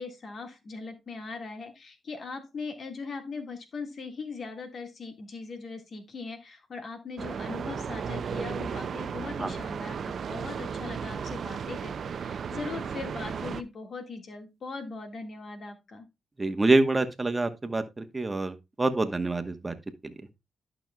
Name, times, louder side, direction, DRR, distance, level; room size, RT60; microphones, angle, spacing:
voice 1, 0.0-16.1, left 4 dB, 55° left, 1.8 m, -40 dB
sound 1, 7.2-13.6, right 6 dB, 60° right, 0.5 m, -35 dB
voice 2, 16.4-19.7, right 2 dB, 25° right, 1.1 m, -26 dB
11.5 x 6.0 x 2.3 m
cardioid pair, 65°, 0 cm